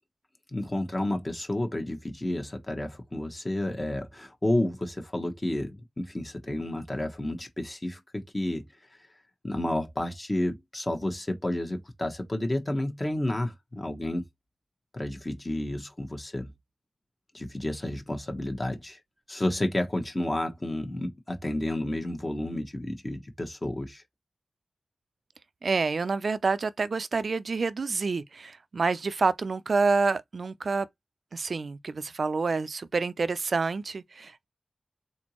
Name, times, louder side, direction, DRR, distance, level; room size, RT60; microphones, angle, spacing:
voice 1, 0.5-9.1 9.4-14.2 14.9-16.5 17.3-19.0 19.3-24.0, left 1 dB, 25° left, 1.0 m, -31 dB
voice 2, 25.6-30.9 31.3-34.4, right 4 dB, 60° right, 0.4 m, -28 dB
4.2 x 3.9 x 3.0 m
wide cardioid pair, 125°, 0 cm